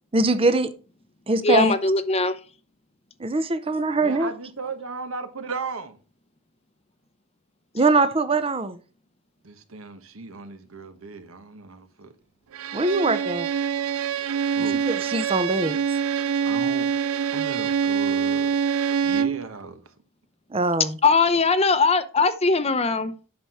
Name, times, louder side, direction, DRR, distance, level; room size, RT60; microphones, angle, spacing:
voice 1, 0.1-0.7 1.3-1.7 3.2-4.3 7.7-8.8 12.7-13.5 14.9-15.8 20.5-20.9, right 2 dB, 25° right, 0.7 m, -22 dB
voice 2, 1.4-2.4 21.0-23.1, left 4 dB, 30° left, 0.7 m, -20 dB
voice 3, 4.0-6.0 9.4-12.1 14.5-14.8 16.4-16.9 17.3-18.5 19.0-19.8, right 4 dB, 70° right, 1.2 m, -36 dB
Bowed string instrument, 12.5-19.5, right 7 dB, 90° right, 0.4 m, -25 dB
8.5 x 5.8 x 4.8 m
head